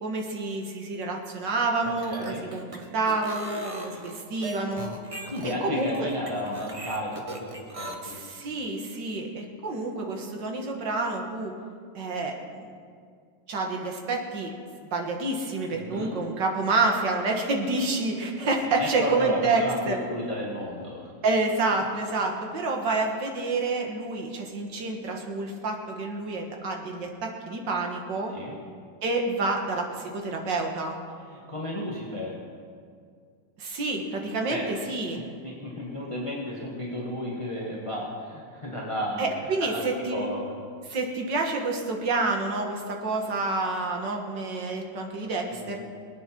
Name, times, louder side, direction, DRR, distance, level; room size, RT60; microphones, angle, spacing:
voice 1, 0.0-4.9 5.6-6.1 8.0-11.5 11.9-12.7 13.5-14.5 14.9-20.0 21.2-28.3 29.0-31.0 33.6-35.2 39.2-40.2 40.9-45.8, right 3 dB, 65° right, 2 dB, 2.3 m, -28 dB
sound 1, 1.9-7.9, right 2 dB, 20° right, 0.9 m, -39 dB
voice 2, 2.1-2.5 5.3-8.2 15.7-16.1 18.7-21.1 22.3-22.4 28.3-28.6 31.3-32.4 34.5-34.6 35.1-39.3 39.6-39.8 40.1-40.6 45.5-45.8, left 1 dB, 15° left, -4 dB, 1.7 m, -33 dB
21.5 x 9.3 x 6.0 m, 2.2 s
omnidirectional pair, 2.1 m